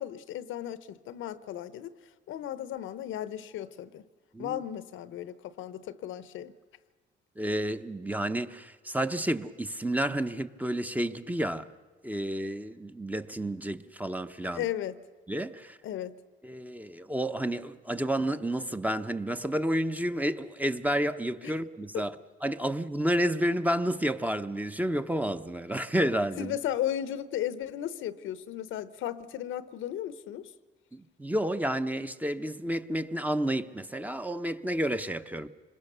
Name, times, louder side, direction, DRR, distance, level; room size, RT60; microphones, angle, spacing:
voice 1, 0.0-1.9 2.3-4.0 4.4-6.5 14.5-15.0 15.8-16.1 21.4-21.5 21.9-22.1 26.4-30.5, left 11 dB, 85° left, 0.9 m, -35 dB
voice 2, 7.4-11.7 12.0-14.6 15.3-15.8 16.4-22.1 22.4-26.6 30.9-35.5, right 1 dB, 10° right, 0.8 m, -30 dB
26.0 x 21.5 x 6.8 m
cardioid pair, 90°, 20 cm